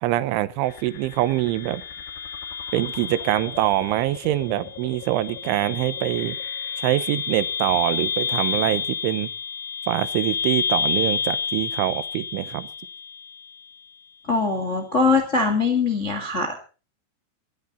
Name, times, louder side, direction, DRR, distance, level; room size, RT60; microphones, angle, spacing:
voice 1, 0.0-1.8 2.7-6.4 6.8-9.3 9.9-12.7, right 15 dB, 90° right, 15 dB, 3.4 m, -24 dB
sound 1, 0.6-13.6, left 6 dB, 60° left, 3.2 m, -30 dB
voice 2, 14.3-16.6, left 4 dB, 40° left, 5 dB, 1.0 m, -22 dB
19.5 x 13.0 x 4.1 m, 0.35 s
omnidirectional pair, 5.3 m